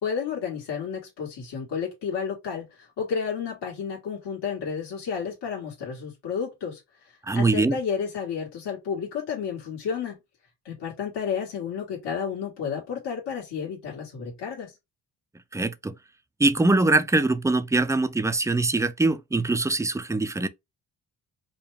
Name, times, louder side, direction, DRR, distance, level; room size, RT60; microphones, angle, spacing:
voice 1, 0.0-10.2 10.7-14.7, left 6 dB, 70° left, 1.7 m, -31 dB
voice 2, 7.2-7.8 15.5-15.9 16.4-20.5, right 2 dB, 10° right, 0.3 m, -23 dB
4.9 x 2.2 x 3.4 m
cardioid pair, 75°, 43 cm